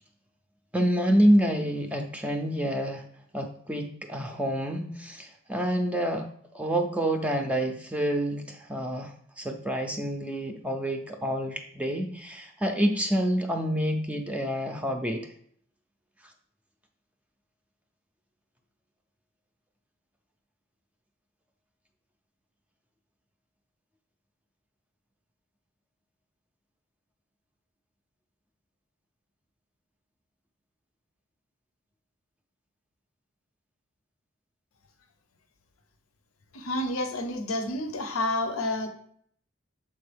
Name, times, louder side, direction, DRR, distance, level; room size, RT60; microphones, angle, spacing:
voice 1, 0.7-3.0 3.3-15.3, equal, 5° right, 4 dB, 0.4 m, -27 dB
voice 2, 36.5-38.9, left 1 dB, 90° left, 7 dB, 0.8 m, -29 dB
7.1 x 4.4 x 3.4 m, 0.62 s
head